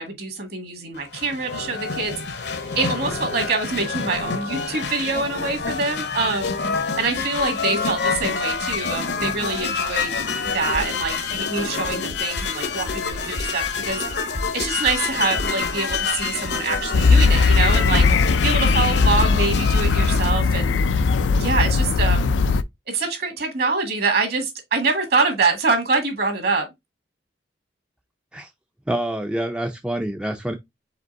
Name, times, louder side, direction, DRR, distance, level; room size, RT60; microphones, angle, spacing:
voice 1, 0.0-2.4 2.7-6.5 7.0-10.1 10.5-14.0 14.5-20.7 21.4-22.3 22.9-26.7, right 3 dB, 60° right, 1.8 m, -25 dB
sound 1, 1.0-20.3, left 4 dB, 65° left, 0.8 m, -27 dB
sound 2, 16.9-22.6, left 4 dB, 90° left, 0.4 m, -18 dB
voice 2, 28.9-30.5, right 1 dB, 5° right, 0.4 m, -26 dB
5.1 x 3.7 x 2.6 m
head